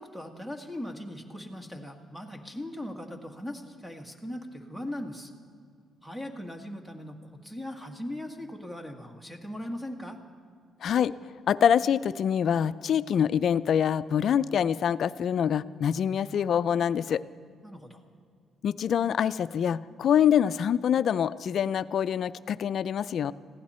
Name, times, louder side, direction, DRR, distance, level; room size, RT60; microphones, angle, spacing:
voice 1, 0.0-5.3 6.0-7.2 7.4-10.2 17.6-18.0, left 1 dB, 5° right, 4 dB, 1.7 m, -39 dB
voice 2, 10.8-11.1 11.5-17.2 18.6-23.3, left 8 dB, 65° left, 15 dB, 0.4 m, -25 dB
21.0 x 15.5 x 4.3 m, 2.2 s
cardioid pair, 90°, 0 cm